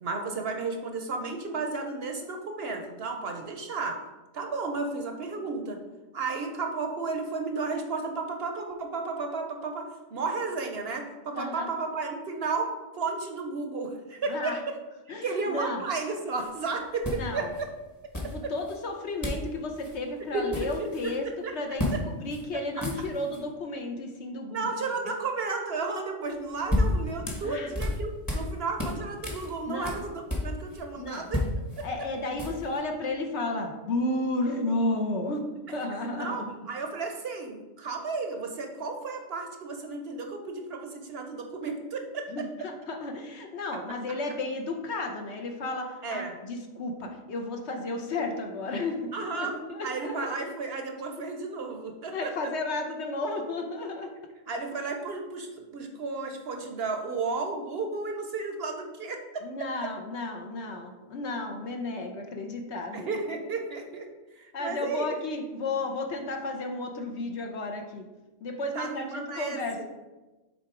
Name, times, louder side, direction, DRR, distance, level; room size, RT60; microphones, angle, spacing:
voice 1, 0.0-4.0 4.3-5.8 6.1-14.8 15.2-17.7 18.4-18.5 20.3-21.1 21.4-21.5 21.9-22.0 22.5-22.6 24.5-31.4 36.1-42.3 43.7-43.8 46.0-46.3 49.1-49.6 49.8-52.3 54.5-59.4 62.9-64.1 64.3-65.1 68.7-69.9, right 4 dB, 60° right, 4 dB, 0.8 m, -33 dB
voice 2, 11.3-11.7 14.3-14.6 15.1-15.8 17.2-17.5 18.2-21.3 21.5-24.7 27.4-27.7 29.7-30.0 30.9-31.3 31.8-35.5 35.7-36.5 42.3-50.3 52.1-54.1 59.4-63.1 64.5-68.1 68.4-69.9, left 2 dB, 60° left, 3 dB, 1.0 m, -33 dB
sound 1, 16.3-16.5 17.0-17.6 18.1-18.8 19.2-19.5 19.8-20.0 20.3-21.2 21.8-22.0 22.3-22.4 22.7-23.4 26.3-28.5 28.8-30.8 31.1-32.8, left 1 dB, 15° left, 1.1 m, -31 dB
6.7 x 3.7 x 4.8 m, 1.1 s
omnidirectional pair, 1.4 m